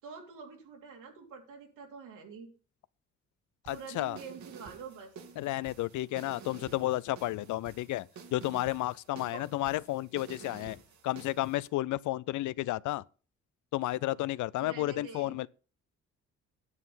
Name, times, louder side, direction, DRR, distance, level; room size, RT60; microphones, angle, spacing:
voice 1, 0.0-2.5 3.7-5.1 9.3-9.4 14.6-15.4, right 5 dB, 85° right, 3.4 m, -46 dB
voice 2, 3.7-4.2 5.4-13.0 13.7-15.5, left 16 dB, 75° left, 0.5 m, -32 dB
sound 1, 3.7-11.7, right 6 dB, 70° right, 2.1 m, -51 dB
9.8 x 7.7 x 5.5 m
cardioid pair, 90°, 30 cm